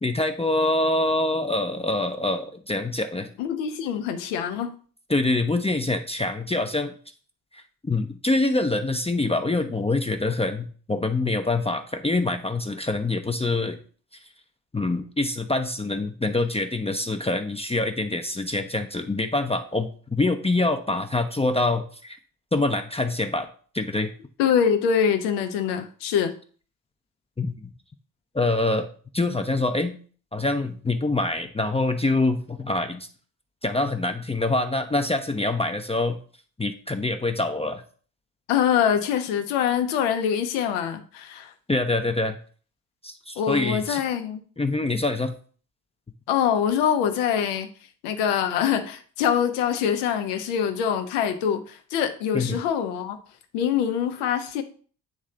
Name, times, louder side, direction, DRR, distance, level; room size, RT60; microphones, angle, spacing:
voice 1, 0.0-3.3 5.1-6.9 7.5-13.8 14.7-22.2 22.5-23.5 23.7-24.1 27.4-27.5 28.3-28.9 29.1-30.0 30.3-33.1 33.6-36.2 36.6-37.8 41.7-42.4 43.0-44.0 44.6-45.3 52.3-52.6, left 2 dB, 10° left, 0.6 m, -25 dB
voice 2, 3.4-4.7 24.4-26.4 38.5-41.5 43.4-44.4 46.3-47.7 48.0-53.2 53.5-54.6, left 8 dB, 75° left, 0.9 m, -24 dB
9.2 x 3.2 x 3.8 m
hypercardioid pair, 45°, 49 cm